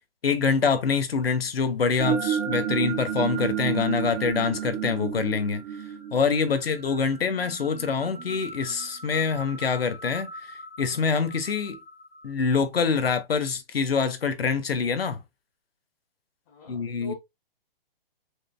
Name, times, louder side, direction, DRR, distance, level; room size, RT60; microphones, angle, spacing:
voice 1, 0.2-5.6 6.1-11.8 12.2-15.2 16.7-17.1, left 5 dB, 90° left, 1.1 m, -25 dB
sound 1, 2.0-12.0, right 9 dB, 5° right, 0.4 m, -32 dB
voice 2, 16.5-17.1, right 1 dB, 20° left, 0.7 m, -41 dB
5.0 x 3.3 x 2.3 m
hypercardioid pair, 160°, 29 cm